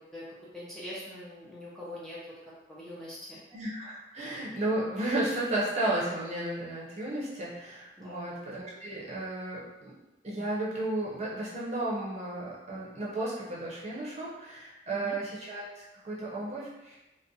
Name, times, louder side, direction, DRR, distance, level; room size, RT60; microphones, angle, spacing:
voice 1, 0.5-3.4 8.0-8.4 15.0-15.2, left 1 dB, 5° left, -8 dB, 0.4 m, -43 dB
voice 2, 3.5-9.9 10.2-17.0, right 1 dB, 40° right, -6 dB, 0.6 m, -33 dB
2.5 x 2.1 x 2.6 m, 1.0 s
head